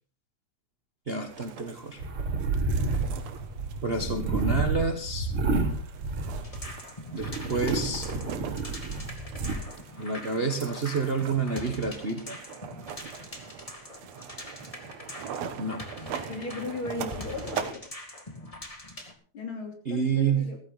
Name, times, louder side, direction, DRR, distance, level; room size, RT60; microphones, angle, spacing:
voice 1, 1.1-2.0 3.8-5.3 7.1-8.1 10.0-12.4 15.6-15.8 19.9-20.5, right 4 dB, 90° right, 5 dB, 0.5 m, -29 dB
sound 1, 1.3-17.7, right 8 dB, 70° right, 2.3 m, -42 dB
sound 2, 2.0-6.8 7.2-9.6, right 3 dB, 50° right, 3.1 m, -30 dB
sound 3, 6.4-19.1, left 1 dB, 15° left, 1.7 m, -43 dB
voice 2, 16.3-17.8 19.3-20.6, left 3 dB, 45° left, 4 dB, 3.5 m, -36 dB
15.0 x 14.5 x 4.1 m, 0.39 s
omnidirectional pair, 3.4 m